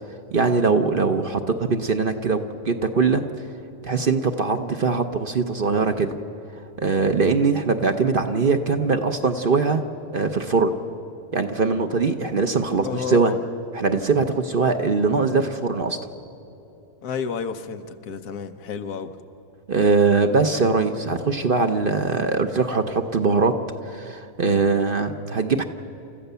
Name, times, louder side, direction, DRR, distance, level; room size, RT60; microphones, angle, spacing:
voice 1, 0.3-2.4 2.6-3.2 3.8-6.2 6.8-9.8 10.1-10.7 11.3-13.3 13.7-16.0 19.7-23.5 23.9-25.6, right 4 dB, 45° right, 7 dB, 0.8 m, -21 dB
voice 2, 12.8-13.4 17.0-19.2, left 6 dB, 90° left, 8 dB, 1.5 m, -30 dB
29.0 x 14.5 x 6.9 m, 2.9 s
omnidirectional pair, 1.6 m